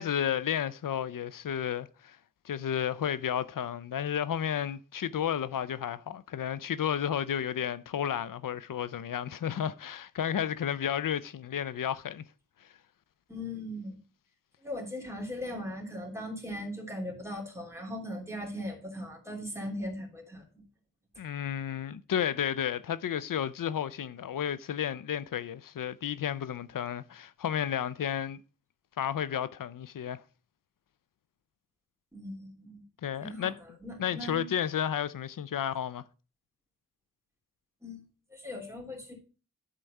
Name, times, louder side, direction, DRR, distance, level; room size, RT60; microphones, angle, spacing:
voice 1, 0.0-2.2 2.4-12.2 21.2-28.4 29.0-30.2 33.0-33.6 34.0-36.0, left 9 dB, 85° left, 0.5 m, -32 dB
voice 2, 13.3-14.0 14.6-20.4 32.1-32.8 33.2-33.5 33.8-34.5 37.8-38.0 38.3-39.1, left 1 dB, 10° right, 3.2 m, -39 dB
11.5 x 4.6 x 5.3 m
wide cardioid pair, 70°, 32 cm